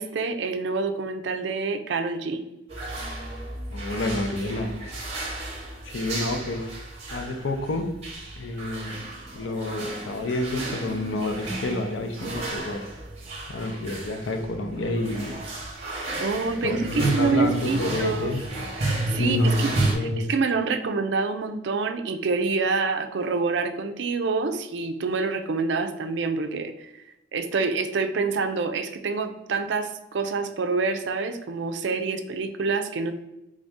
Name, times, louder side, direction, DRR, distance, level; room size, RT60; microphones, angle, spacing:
voice 1, 0.0-2.4 16.2-18.4 18.8-33.1, right 4 dB, 65° right, 7 dB, 0.4 m, -27 dB
sound 1, 2.7-19.9, right 2 dB, 35° right, 1.0 m, -32 dB
voice 2, 3.7-4.8 5.8-6.7 7.1-7.9 8.4-9.0 9.3-12.8 13.5-15.4 16.6-18.4 19.2-20.3, left 2 dB, 80° left, 5 dB, 0.5 m, -29 dB
3.6 x 2.6 x 3.5 m, 0.91 s
head